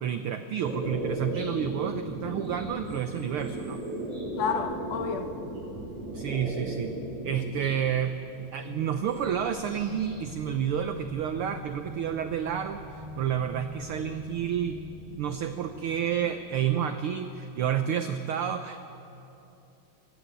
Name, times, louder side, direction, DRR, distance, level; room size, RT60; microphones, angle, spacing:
voice 1, 0.0-3.8 6.1-6.9 7.2-14.8 15.2-18.8, right 9 dB, 85° right, 1.2 m, -30 dB
sound 1, 0.6-7.8 8.8-10.2 10.4-11.4, right 1 dB, 55° right, 8.1 m, -36 dB
voice 2, 4.4-5.3, left 6 dB, 70° left, 1.9 m, -30 dB
sound 2, 8.7-16.9, equal, 10° right, 4.0 m, -44 dB
25.0 x 14.0 x 9.0 m
omnidirectional pair, 3.4 m